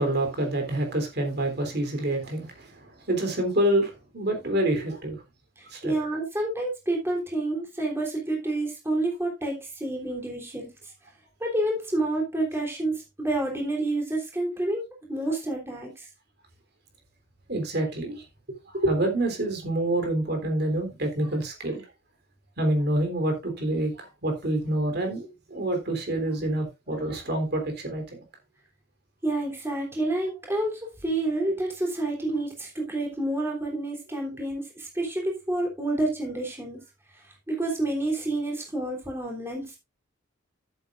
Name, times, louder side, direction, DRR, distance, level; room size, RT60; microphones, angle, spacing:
voice 1, 0.0-5.2 5.7-5.9 17.5-18.2 18.7-21.8 22.6-28.2, right 1 dB, 55° right, 3.5 m, -27 dB
voice 2, 5.6-10.7 11.4-14.8 15.1-16.1 29.2-36.8 37.5-39.8, right 2 dB, 15° right, 3.5 m, -29 dB
14.0 x 8.2 x 2.5 m
head